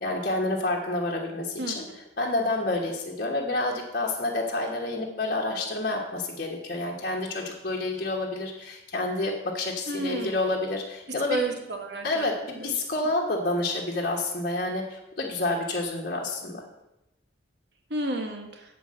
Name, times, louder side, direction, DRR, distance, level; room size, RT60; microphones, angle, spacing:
voice 1, 0.0-11.4 12.0-16.6, left 2 dB, 45° left, -2 dB, 1.2 m, -29 dB
voice 2, 9.9-10.4 11.3-12.2 12.6-12.7 17.9-18.5, right 2 dB, 55° right, 3 dB, 1.4 m, -30 dB
9.1 x 4.7 x 7.6 m, 0.93 s
head